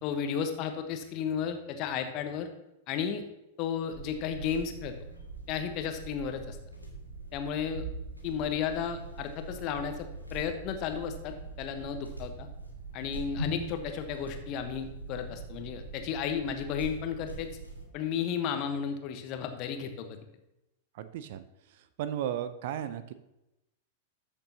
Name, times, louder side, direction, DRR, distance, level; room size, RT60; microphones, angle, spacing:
voice 1, 0.0-2.5 2.9-3.2 3.6-4.9 5.5-6.6 7.3-7.8 8.2-12.5 12.9-17.5 17.9-20.2, left 7 dB, 40° left, 7 dB, 1.1 m, -33 dB
sound 1, 3.9-17.9, right 2 dB, 90° right, 1.7 m, -42 dB
voice 2, 21.0-21.4 22.0-23.1, right 10 dB, 50° right, 12 dB, 0.6 m, -34 dB
13.0 x 6.8 x 2.9 m, 0.91 s
figure-of-eight pair, 95°, 0 cm